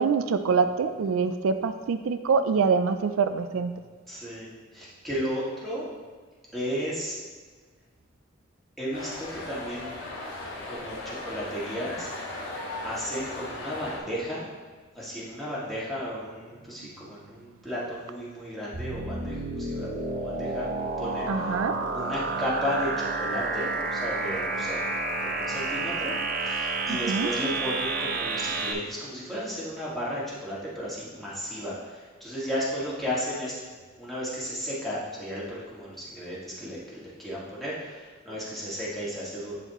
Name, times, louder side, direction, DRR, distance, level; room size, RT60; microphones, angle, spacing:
voice 1, 0.0-3.7 21.3-21.8 26.9-27.3, right 5 dB, 90° right, 10 dB, 0.4 m, -25 dB
voice 2, 4.1-5.9 6.5-7.2 8.8-10.0 10.7-12.1 12.8-14.4 14.9-20.7 21.0-21.3 21.9-24.8 25.2-33.6 34.0-39.5, equal, ahead, -9 dB, 1.8 m, -34 dB
sound 1, 8.9-14.0, left 2 dB, 60° left, 1.5 m, -37 dB
sound 2, 18.7-28.7, right 3 dB, 45° right, 0.7 m, -30 dB
11.0 x 4.2 x 3.0 m, 1.5 s
head